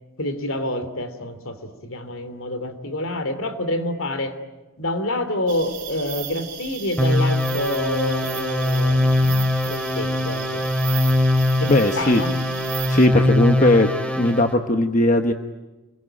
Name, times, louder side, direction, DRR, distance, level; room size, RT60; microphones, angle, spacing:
voice 1, 0.2-4.4 4.8-10.6 11.6-12.4, left 1 dB, 65° left, 9 dB, 3.1 m, -28 dB
sound 1, 5.5-13.1, right 10 dB, 35° right, 5.4 m, -36 dB
sound 2, 7.0-14.5, left 1 dB, 5° left, 3.3 m, -21 dB
voice 2, 11.7-12.2 12.9-13.9 14.2-15.3, left 1 dB, 35° left, 6 dB, 1.1 m, -18 dB
29.0 x 22.5 x 8.9 m, 1.1 s
head